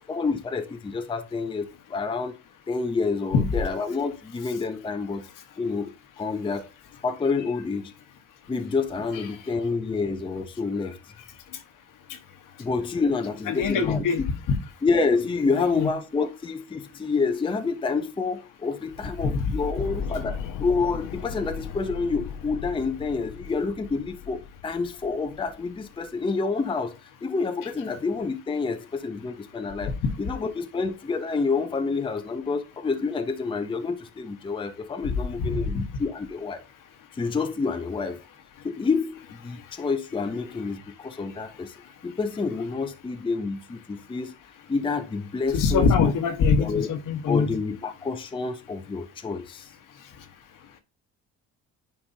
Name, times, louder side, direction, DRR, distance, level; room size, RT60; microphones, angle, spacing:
voice 1, 0.1-2.3 2.7-5.2 5.6-6.7 7.0-7.9 8.5-11.0 12.6-14.3 14.8-26.9 27.2-29.9 30.2-36.6 37.1-38.2 38.6-41.7 42.0-44.3 44.7-46.1 46.6-46.9 47.3-49.7, left 4 dB, 15° left, 0.6 m, -28 dB
voice 2, 13.5-14.5 15.5-15.9 19.2-19.5 35.4-35.8 45.5-47.5, left 5 dB, 60° left, 1.2 m, -23 dB
sound 1, 19.8-26.1, left 7 dB, 85° left, 0.8 m, -37 dB
9.7 x 4.6 x 2.7 m
cardioid pair, 110°, 35 cm